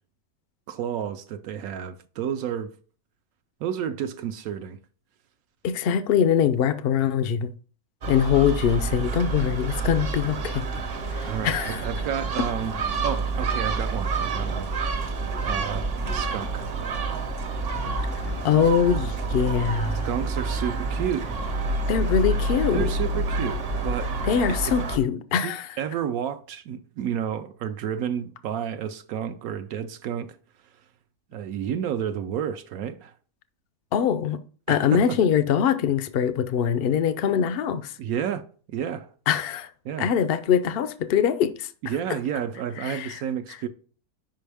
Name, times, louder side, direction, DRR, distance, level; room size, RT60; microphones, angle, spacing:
voice 1, 0.7-2.7 3.6-4.8 11.2-12.8 13.0-14.7 15.4-16.7 20.0-21.3 22.7-24.1 24.5-24.6 25.3-25.5 25.8-30.4 31.3-33.1 34.7-35.2 38.0-38.4 38.7-39.1 39.8-40.2 41.8-43.7, right 9 dB, 75° right, 1.0 m, -31 dB
voice 2, 5.6-7.5 8.1-10.6 11.2-11.8 18.4-20.1 21.9-22.9 24.2-25.7 33.9-34.4 34.7-37.9 39.3-39.7 40.0-41.9 42.8-43.2, left 8 dB, 70° left, 0.5 m, -23 dB
Gull seagull, 8.0-25.0, right 3 dB, 50° right, 0.9 m, -28 dB
5.7 x 5.3 x 3.4 m
omnidirectional pair, 1.6 m